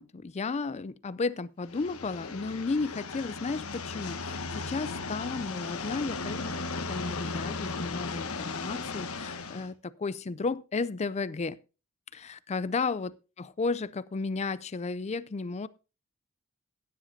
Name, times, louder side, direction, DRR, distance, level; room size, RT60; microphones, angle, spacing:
voice 1, 0.0-11.6 12.1-13.1 13.4-15.7, left 4 dB, 30° left, 0.4 m, -33 dB
sound 1, 1.6-9.7, left 4 dB, 85° left, 1.2 m, -36 dB
15.0 x 10.0 x 2.7 m
head